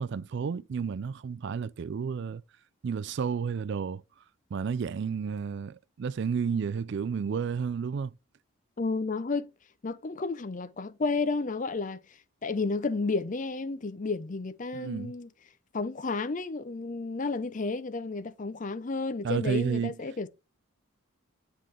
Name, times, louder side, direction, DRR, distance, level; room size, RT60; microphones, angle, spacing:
voice 1, 0.0-2.4 2.8-4.0 4.5-8.1 14.7-15.1 19.2-20.0, right 6 dB, 55° right, 0.3 m, -31 dB
voice 2, 8.8-9.5 9.8-12.0 12.4-15.3 15.7-20.3, left 3 dB, 35° left, 0.5 m, -31 dB
9.6 x 3.7 x 3.2 m
head